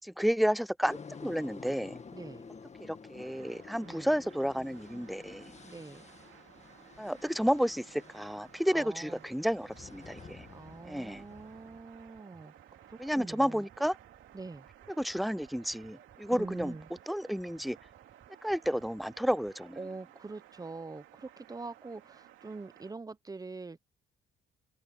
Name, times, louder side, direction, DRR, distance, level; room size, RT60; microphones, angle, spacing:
voice 1, 0.0-2.0 2.8-5.5 7.0-10.5 10.8-11.2 13.0-14.0 15.0-16.7 17.1-17.8 18.4-19.8, equal, ahead, 0.5 m, -31 dB
sound 1, 0.9-11.8, left 5 dB, 35° left, 2.0 m, -51 dB
voice 2, 2.1-2.4 3.8-4.1 5.6-6.1 8.7-9.2 10.5-12.5 12.9-13.6 14.3-14.7 16.3-16.9 19.8-23.8, right 3 dB, 20° right, 1.0 m, -44 dB
sound 2, 3.2-22.9, right 13 dB, 90° right, 2.8 m, -58 dB
sound 3, 9.6-19.6, right 7 dB, 50° right, 6.0 m, -61 dB
open air
cardioid pair, 90°, 20 cm